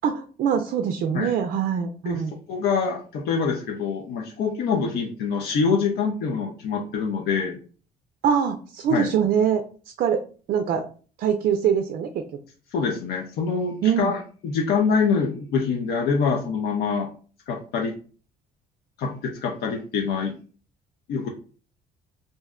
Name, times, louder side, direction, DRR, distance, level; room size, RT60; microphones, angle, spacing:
voice 1, 0.0-2.4 8.2-9.6 10.0-10.2 10.5-10.9 11.2-12.2 13.8-14.1, right 7 dB, 55° right, 7 dB, 0.4 m, -23 dB
voice 2, 2.5-7.6 8.9-9.1 12.7-17.1 17.5-17.9 19.0-20.3 21.1-21.3, left 5 dB, 70° left, 0 dB, 0.5 m, -25 dB
2.6 x 2.1 x 3.6 m, 0.39 s
cardioid pair, 110°, 17 cm